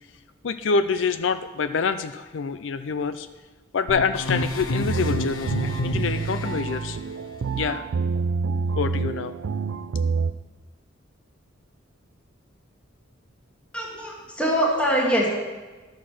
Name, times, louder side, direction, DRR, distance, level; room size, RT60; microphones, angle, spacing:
voice 1, 0.4-3.3 3.7-7.0 7.5-7.8 8.8-9.3, left 5 dB, 65° left, 11 dB, 0.4 m, -26 dB
sound 1, 3.9-6.6, left 1 dB, 80° left, 0.8 m, -29 dB
sound 2, 4.9-10.3, right 4 dB, 85° right, 0.4 m, -27 dB
voice 2, 13.7-15.3, equal, 5° left, -4 dB, 1.4 m, -23 dB
11.5 x 6.4 x 6.0 m, 1.3 s
head